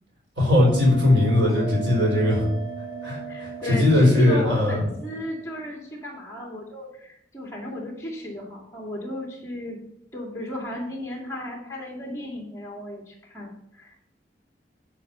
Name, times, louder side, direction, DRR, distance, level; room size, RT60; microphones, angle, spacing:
voice 1, 0.4-2.4 3.0-4.8, left 1 dB, 85° right, -3 dB, 4.0 m, -19 dB
Bell, 0.7-5.7, right 4 dB, 25° right, 3.0 m, -37 dB
voice 2, 3.3-9.8 10.1-14.1, left 1 dB, 15° left, -1 dB, 2.3 m, -34 dB
11.0 x 4.5 x 5.6 m, 0.74 s
head